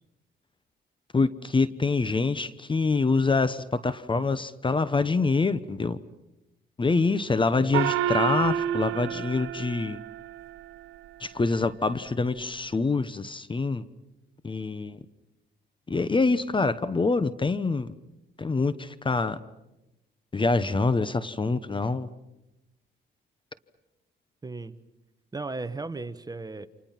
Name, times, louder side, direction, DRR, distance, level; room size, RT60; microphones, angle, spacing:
voice 1, 1.1-6.0 6.8-10.0 11.2-13.8 14.4-15.0 15.9-17.9 18.4-19.4 20.3-22.1, left 3 dB, 25° left, 15 dB, 1.0 m, -25 dB
Gong, 7.7-10.6, right 10 dB, 90° right, 1.0 m, -29 dB
voice 2, 24.4-24.7 25.3-26.7, right 3 dB, 20° right, 12 dB, 1.2 m, -36 dB
29.5 x 27.0 x 6.0 m, 0.95 s
cardioid pair, 90°, 20 cm